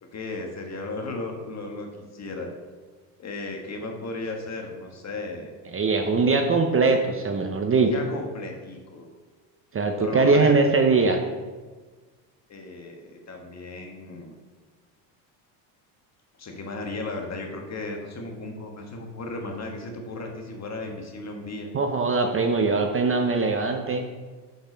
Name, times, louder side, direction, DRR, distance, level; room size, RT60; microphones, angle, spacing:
voice 1, 0.0-2.5 3.2-5.6 7.7-9.1 10.0-10.6 12.5-14.4 16.4-21.7, left 2 dB, 30° left, 2 dB, 1.5 m, -35 dB
voice 2, 5.7-7.9 9.7-11.2 21.7-24.1, right 4 dB, 25° right, 4 dB, 0.7 m, -21 dB
6.4 x 5.8 x 5.2 m, 1.4 s
supercardioid pair, 90°, 50 cm